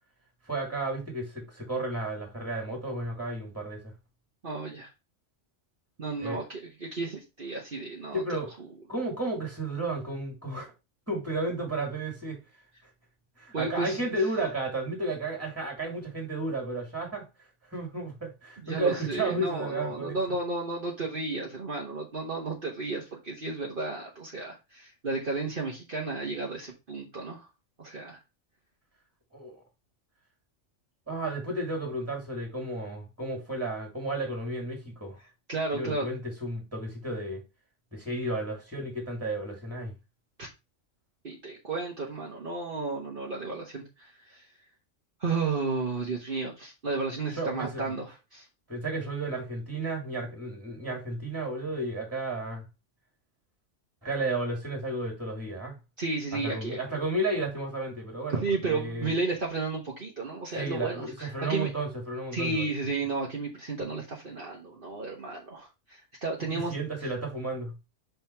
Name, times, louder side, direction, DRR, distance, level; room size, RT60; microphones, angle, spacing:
voice 1, 0.5-3.9 6.2-6.4 8.1-8.5 8.9-10.7 11.1-12.4 13.4-17.3 17.7-20.2 29.3-29.6 31.1-35.2 35.7-37.4 37.9-39.9 47.4-47.8 48.7-52.6 54.0-55.8 56.3-59.1 60.5-62.7 66.5-67.7, right 2 dB, 10° right, 2.4 m, -33 dB
voice 2, 4.4-4.9 6.0-8.2 13.5-14.1 18.6-27.5 27.8-28.2 35.5-36.1 40.4-40.5 41.2-44.4 45.2-48.4 56.0-56.8 58.3-61.7 62.3-66.7, right 3 dB, 45° right, 1.4 m, -33 dB
5.7 x 4.4 x 4.5 m
omnidirectional pair, 1.3 m